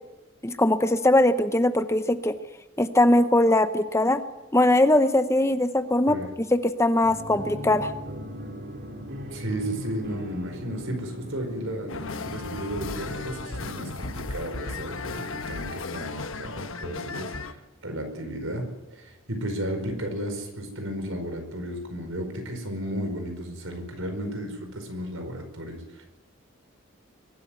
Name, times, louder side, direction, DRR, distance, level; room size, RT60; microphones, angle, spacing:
voice 1, 0.4-2.3 2.8-4.2 4.5-6.2 6.5-7.9, left 1 dB, 15° left, 10 dB, 0.8 m, -21 dB
sound 1, 7.0-14.6, equal, 50° right, 2.7 m, -40 dB
voice 2, 9.3-18.7 18.9-26.0, right 1 dB, 75° right, 6 dB, 5.0 m, -34 dB
sound 2, 11.9-17.5, left 3 dB, 70° left, 1.2 m, -35 dB
23.0 x 12.5 x 9.5 m, 1.0 s
head